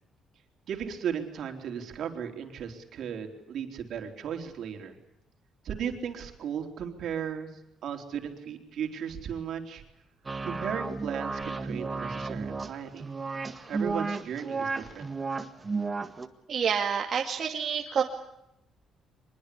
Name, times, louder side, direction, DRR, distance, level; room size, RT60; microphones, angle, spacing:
voice 1, 0.7-5.0 5.6-7.5 7.8-9.8 10.4-13.1 13.7-15.1, right 8 dB, 60° right, 5 dB, 4.0 m, -36 dB
sound 1, 10.3-16.3, right 4 dB, 20° right, 1.7 m, -33 dB
voice 2, 16.5-18.0, right 7 dB, 40° right, 0 dB, 2.4 m, -28 dB
24.5 x 22.0 x 8.6 m, 0.86 s
cardioid pair, 155°, 0 cm